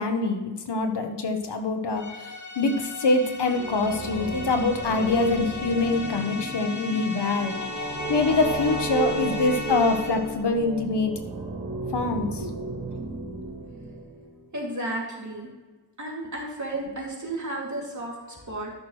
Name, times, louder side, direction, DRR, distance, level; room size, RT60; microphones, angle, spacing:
voice 1, 0.0-7.6 8.1-11.1 11.9-12.4, left 3 dB, 85° left, 6 dB, 1.2 m, -25 dB
sound 1, 2.0-10.4, left 4 dB, 45° left, 1.1 m, -36 dB
sound 2, 3.3-14.5, right 4 dB, 70° right, 1.6 m, -34 dB
voice 2, 12.3-13.0 14.5-15.5 16.0-18.8, right 1 dB, 45° right, -2 dB, 2.9 m, -33 dB
13.0 x 6.2 x 3.3 m, 1.3 s
wide cardioid pair, 60°, 40 cm